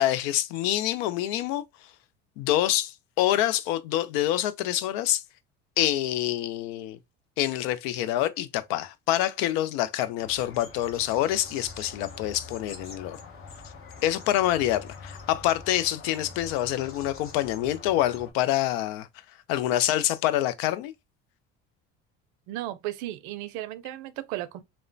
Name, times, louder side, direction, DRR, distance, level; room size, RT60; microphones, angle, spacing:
voice 1, 0.0-1.6 2.4-5.2 5.8-7.0 7.4-13.2 14.0-19.1 19.5-20.9, left 13 dB, 80° left, 0.5 m, -26 dB
sound 1, 10.2-18.3, left 4 dB, 45° left, 0.9 m, -45 dB
voice 2, 22.5-24.6, right 14 dB, 70° right, 0.5 m, -35 dB
2.9 x 2.0 x 2.5 m
supercardioid pair, 100°, 31 cm